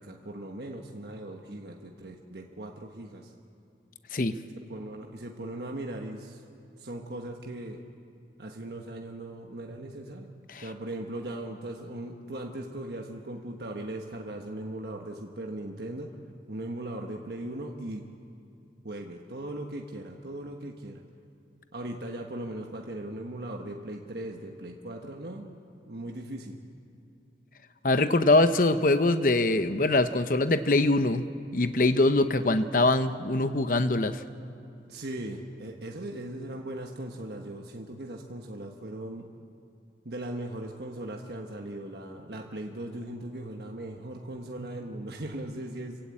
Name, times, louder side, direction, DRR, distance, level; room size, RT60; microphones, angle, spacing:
voice 1, 0.0-3.3 4.5-6.4 6.8-7.8 8.4-10.3 10.6-16.1 16.5-18.0 18.8-21.0 21.7-25.6 25.9-26.6 34.9-39.3 40.0-46.0, right 1 dB, 60° right, 1 dB, 1.3 m, -38 dB
voice 2, 27.8-31.2 31.5-34.2, left 2 dB, 50° left, 11 dB, 0.7 m, -23 dB
26.0 x 16.0 x 8.6 m, 2.6 s
head